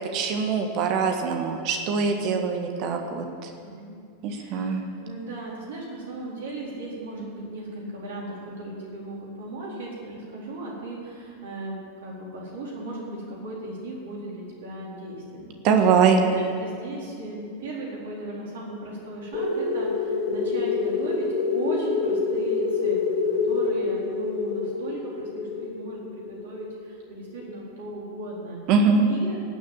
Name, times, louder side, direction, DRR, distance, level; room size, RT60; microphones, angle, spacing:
voice 1, 0.1-3.2 4.2-4.8 15.6-16.2 28.7-29.0, right 5 dB, 40° right, 4 dB, 1.6 m, -22 dB
voice 2, 4.3-15.6 16.3-28.6 29.0-29.4, right 2 dB, 60° right, -4 dB, 4.1 m, -37 dB
sound 1, 19.3-27.7, left 4 dB, 40° left, 3.2 m, -27 dB
18.0 x 6.7 x 9.0 m, 2.5 s
figure-of-eight pair, 90°, 0 cm